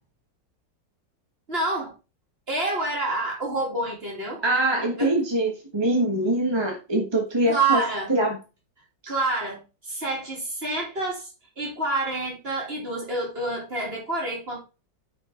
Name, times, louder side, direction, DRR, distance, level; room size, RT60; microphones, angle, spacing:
voice 1, 1.5-1.9 2.5-4.4 5.0-5.2 7.5-8.1 9.1-11.3 11.6-14.6, right 2 dB, 30° right, 3.0 m, -28 dB
voice 2, 4.4-7.8 8.1-8.4, right 1 dB, 15° right, 1.2 m, -23 dB
9.6 x 5.5 x 3.7 m
omnidirectional pair, 2.0 m